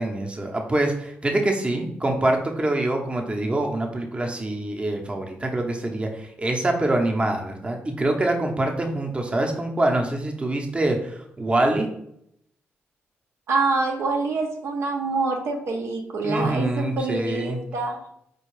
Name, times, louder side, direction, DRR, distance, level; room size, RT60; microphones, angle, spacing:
voice 1, 0.0-11.9 16.2-17.6, right 1 dB, 25° right, 2 dB, 0.7 m, -25 dB
voice 2, 13.5-18.0, right 3 dB, 70° right, 2 dB, 0.6 m, -26 dB
4.3 x 2.3 x 3.1 m, 0.72 s
cardioid pair, 65°, 5 cm